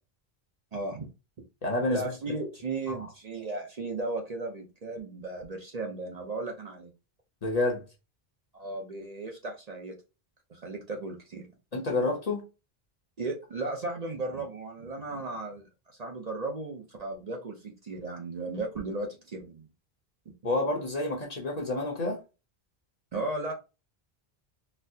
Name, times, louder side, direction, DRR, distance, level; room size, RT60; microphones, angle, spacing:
voice 1, 0.7-1.1 1.9-6.9 8.5-9.9 10.5-11.4 13.2-15.6 16.0-19.7 23.1-23.5, right 2 dB, 45° right, 0.7 m, -35 dB
voice 2, 1.6-2.0 2.9-3.1 7.4-7.8 11.7-12.4 20.4-22.2, left 2 dB, 45° left, 0.9 m, -29 dB
4.1 x 2.1 x 2.7 m
omnidirectional pair, 1.0 m